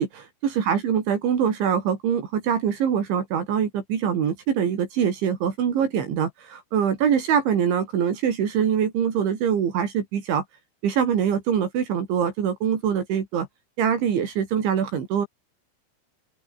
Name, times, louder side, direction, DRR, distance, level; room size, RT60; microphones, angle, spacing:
voice 1, 0.0-10.4 10.8-13.5 13.8-15.3, right 8 dB, 65° right, 5.5 m, -24 dB
open air
omnidirectional pair, 5.9 m